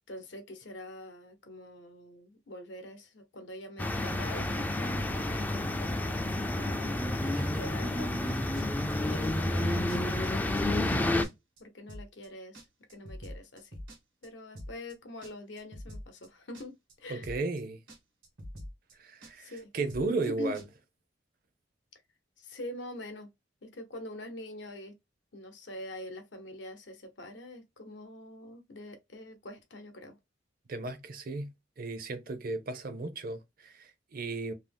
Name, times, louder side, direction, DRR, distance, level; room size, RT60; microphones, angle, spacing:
voice 1, 0.1-7.0 7.5-8.2 8.7-11.3 11.6-13.8 14.2-17.3 19.4-19.7 20.2-20.6 22.4-23.3 23.6-25.0 25.3-30.2, left 1 dB, 70° left, 0.8 m, -45 dB
sound 1, 3.8-11.2, left 1 dB, 10° left, 0.3 m, -30 dB
voice 2, 7.2-7.6 17.1-17.8 19.0-20.6 30.7-31.5 31.8-34.5, right 3 dB, 50° right, 0.6 m, -35 dB
sound 2, 8.5-8.9 9.2-9.6 9.9-10.0 10.2-10.9 11.2-11.6 11.9-12.3 12.5-14.3 14.5-14.9 15.2-16.3 16.5-16.9 17.2-17.6 17.9-18.0 18.2-18.9 19.2-19.6 19.9-20.3 20.5-20.7, equal, 80° right, 1.3 m, -45 dB
2.7 x 2.0 x 3.3 m
head